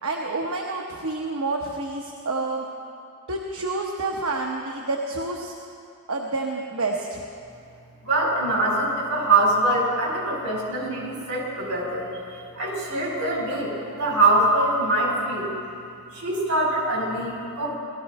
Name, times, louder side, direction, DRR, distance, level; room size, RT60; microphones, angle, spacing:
voice 1, 0.0-2.7 3.3-5.5 6.1-7.2, right 3 dB, 65° right, 0 dB, 1.0 m, -28 dB
voice 2, 8.0-12.1 12.3-15.5 16.1-17.7, right 2 dB, 85° right, -3 dB, 4.2 m, -23 dB
18.0 x 14.0 x 4.2 m, 2.5 s
head